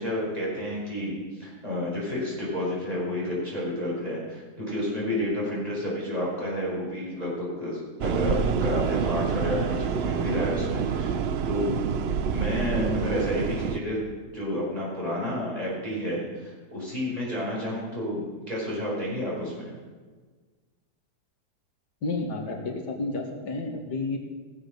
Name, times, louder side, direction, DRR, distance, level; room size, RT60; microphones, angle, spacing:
voice 1, 0.0-11.8 12.3-14.0 14.3-19.7, left 1 dB, 20° right, -6 dB, 5.2 m, -30 dB
sound 1, 8.0-13.8, right 6 dB, 75° right, 0.6 m, -27 dB
voice 2, 12.6-13.1 22.0-24.3, left 2 dB, 75° left, 2 dB, 2.1 m, -31 dB
16.5 x 7.3 x 6.6 m, 1.4 s
omnidirectional pair, 1.8 m